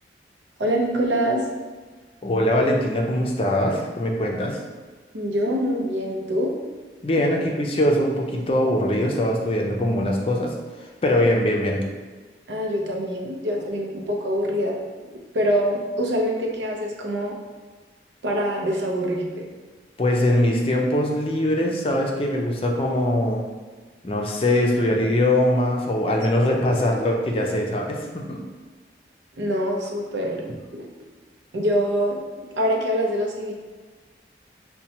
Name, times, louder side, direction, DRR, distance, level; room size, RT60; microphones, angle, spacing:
voice 1, 0.6-1.4 5.1-6.5 12.5-14.8 15.3-17.4 18.2-19.5 29.4-30.5 30.7-30.9 31.5-32.2 32.5-33.5, equal, 90° right, 0 dB, 0.7 m, -24 dB
voice 2, 2.2-4.6 7.0-10.6 11.0-11.8 20.0-23.4 24.0-28.4, left 1 dB, 30° left, 0 dB, 0.4 m, -22 dB
5.2 x 2.2 x 2.8 m, 1.4 s
head